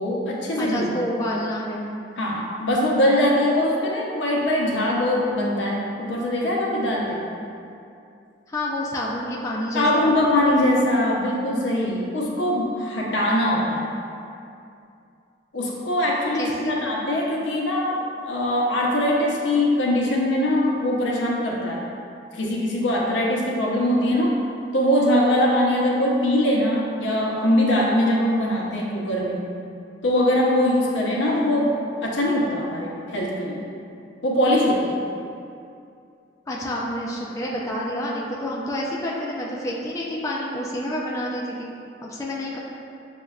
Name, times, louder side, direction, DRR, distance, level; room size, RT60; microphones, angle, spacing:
voice 1, 0.0-0.9 2.2-7.2 9.7-13.9 15.5-21.8 22.3-24.4 24.7-29.4 30.0-31.7 32.0-33.7 34.2-35.0, left 1 dB, 85° left, -3 dB, 0.6 m, -22 dB
voice 2, 0.6-2.0 8.5-10.1 16.3-16.8 36.5-41.7 42.0-42.6, equal, 20° left, -4 dB, 0.3 m, -29 dB
6.4 x 2.2 x 2.3 m, 2.5 s
head